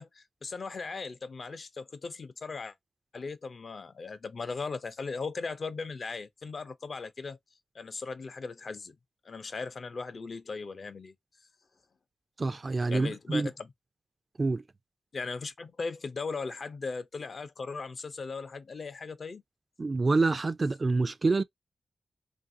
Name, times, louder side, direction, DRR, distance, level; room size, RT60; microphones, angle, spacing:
voice 1, 0.0-2.7 3.1-7.4 7.7-9.0 9.2-11.1 12.9-13.7 15.1-19.4, left 4 dB, 60° left, 0.5 m, -38 dB
voice 2, 12.4-13.5 14.4-14.6 19.8-21.4, right 3 dB, 40° right, 0.3 m, -27 dB
2.9 x 2.6 x 2.5 m
cardioid pair, 60°, 0 cm